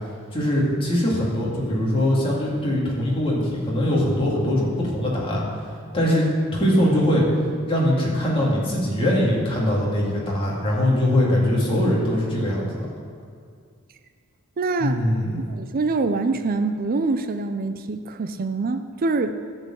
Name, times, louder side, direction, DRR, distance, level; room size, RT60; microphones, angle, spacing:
voice 1, 0.3-5.4 5.9-6.3 6.5-7.3 7.7-12.9 14.8-15.3, left 1 dB, 25° left, -5 dB, 2.1 m, -22 dB
voice 2, 14.6-15.1 15.5-19.4, right 3 dB, 40° right, 9 dB, 0.4 m, -25 dB
12.5 x 4.6 x 7.4 m, 2.2 s
head